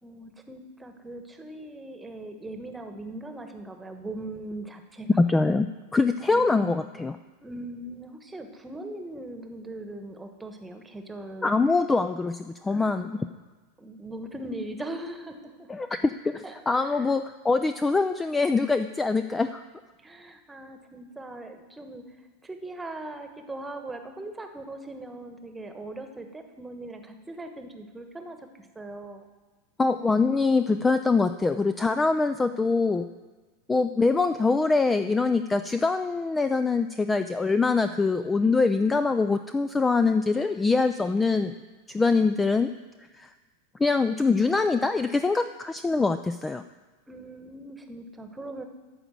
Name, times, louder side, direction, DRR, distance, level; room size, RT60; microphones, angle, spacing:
voice 1, 0.0-5.1 6.3-6.9 7.4-11.5 12.7-13.0 13.8-15.7 16.4-17.1 20.0-22.0 22.4-29.3 47.1-48.6, right 2 dB, 10° right, 6 dB, 1.2 m, -40 dB
voice 2, 5.2-7.2 11.4-13.2 15.7-19.6 29.8-33.1 33.7-41.6 41.9-42.7 43.1-43.3 43.8-46.6, left 3 dB, 15° left, 10 dB, 0.4 m, -24 dB
13.0 x 5.0 x 7.6 m, 1.3 s
figure-of-eight pair, 85°, 0 cm